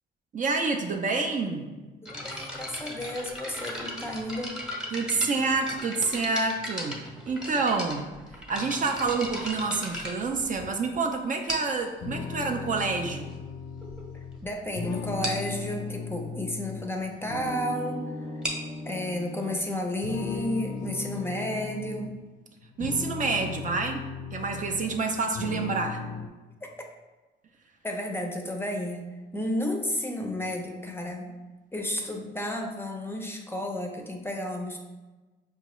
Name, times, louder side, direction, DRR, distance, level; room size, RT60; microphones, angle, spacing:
voice 1, 0.3-1.7 4.9-8.1 8.3-13.4 22.8-26.0, right 4 dB, 40° right, 3 dB, 0.4 m, -28 dB
voice 2, 2.0-4.6 14.4-18.0 18.9-22.1 26.6-26.7 27.8-29.1 29.3-31.3 31.7-34.8, left 1 dB, 10° left, 2 dB, 0.5 m, -32 dB
sound 1, 2.1-10.9 11.5-11.9 12.7-12.8 13.5-13.6 13.8-14.0 14.3-14.5 14.7-14.8 15.2-15.5 18.2-21.7, equal, 5° right, 0.9 m, -37 dB
sound 2, 12.0-16.9 17.3-19.6 20.0-22.2 22.6-25.0 25.3-26.3, left 5 dB, 80° left, 0.4 m, -37 dB
4.8 x 2.3 x 3.0 m, 1.2 s
cardioid pair, 90°, 20 cm